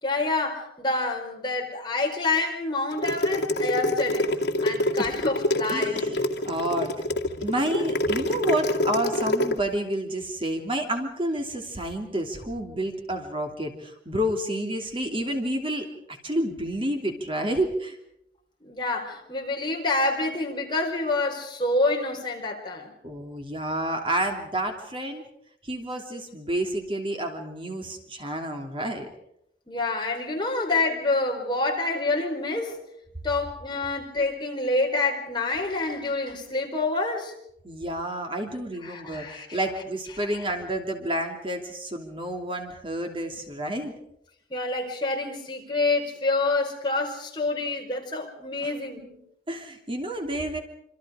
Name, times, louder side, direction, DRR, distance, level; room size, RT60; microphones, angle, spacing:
voice 1, 0.0-4.3 4.6-6.0 18.6-22.9 29.7-32.8 33.2-37.3 38.8-39.6 44.5-49.2, left 2 dB, 25° left, 4.4 m, -27 dB
sound 1, 2.9-9.5, left 1 dB, 70° left, 2.3 m, -26 dB
voice 2, 5.7-6.9 7.4-18.0 23.0-25.2 25.6-29.1 37.6-43.9 48.6-48.7 49.5-50.6, right 1 dB, 30° right, 2.9 m, -30 dB
26.5 x 26.5 x 5.0 m
head